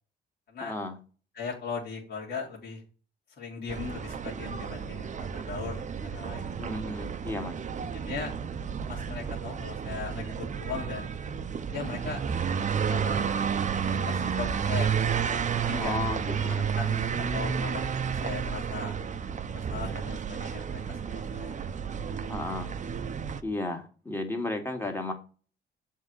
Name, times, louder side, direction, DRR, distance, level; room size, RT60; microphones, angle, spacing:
voice 1, 0.6-0.9 6.6-7.6 15.7-16.6 22.3-22.7 23.4-25.1, left 2 dB, 10° left, 3 dB, 2.2 m, -33 dB
voice 2, 1.3-2.8 3.4-6.5 7.9-8.3 8.9-11.2 11.7-12.2 12.8-13.3 14.1-15.0 15.6-16.0 16.5-18.9 19.5-21.0 21.3-21.6, left 5 dB, 55° left, -4 dB, 2.5 m, -38 dB
sound 1, 3.7-23.4, right 7 dB, 40° right, 0.7 m, -31 dB
7.2 x 3.7 x 6.3 m, 0.37 s
cardioid pair, 90°, 20 cm